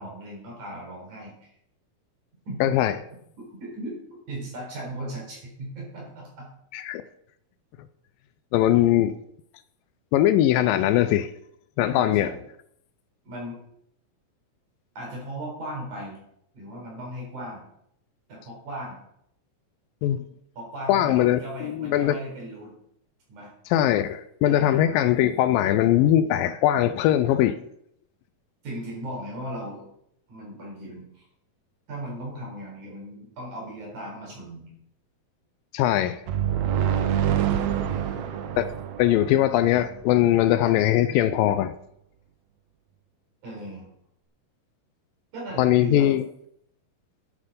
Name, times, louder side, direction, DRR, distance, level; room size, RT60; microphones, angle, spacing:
voice 1, 0.0-1.3 2.5-2.8 3.4-6.5 8.7-9.0 11.9-12.4 13.2-13.6 15.0-16.2 16.5-17.6 18.3-19.0 20.6-22.7 23.3-23.5 24.4-24.8 28.6-29.9 30.3-31.2 31.9-34.7 37.8-38.2 43.4-43.9 45.3-46.1, right 1 dB, 55° right, 5.8 m, -37 dB
voice 2, 2.6-2.9 6.7-7.0 8.5-9.1 10.1-11.3 11.8-12.3 20.0-20.2 20.9-22.2 23.7-27.6 35.7-36.2 38.6-38.7 39.0-41.7 45.6-46.3, left 12 dB, 80° left, 2.2 m, -21 dB
sound 1, 36.3-40.0, right 10 dB, 90° right, 1.5 m, -26 dB
11.0 x 8.3 x 5.3 m
omnidirectional pair, 4.1 m